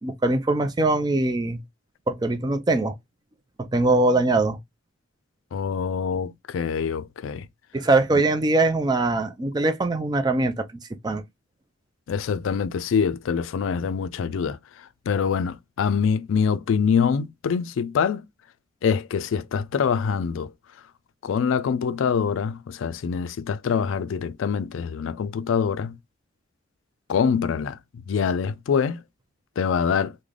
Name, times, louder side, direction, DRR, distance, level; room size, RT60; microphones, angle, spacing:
voice 1, 0.0-1.6 2.1-2.9 3.6-4.6 7.7-10.7 11.0-11.2, right 2 dB, 20° right, 0.4 m, -22 dB
voice 2, 5.5-7.5 12.1-14.6 15.1-18.2 18.8-20.5 21.2-26.0 27.1-27.8 28.1-29.0 29.6-30.1, left 6 dB, 75° left, 0.3 m, -24 dB
3.2 x 2.1 x 3.7 m
head